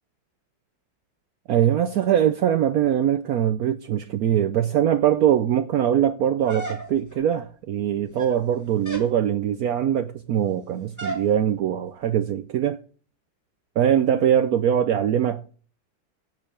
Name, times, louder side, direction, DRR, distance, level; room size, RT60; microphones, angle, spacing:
voice 1, 1.5-12.8 13.8-15.5, right 10 dB, 70° right, 0.8 m, -22 dB
sound 1, 6.5-7.2 8.0-8.5 8.8-9.2 11.0-11.3, right 2 dB, 10° left, 1.4 m, -34 dB
8.4 x 6.5 x 6.0 m
omnidirectional pair, 2.1 m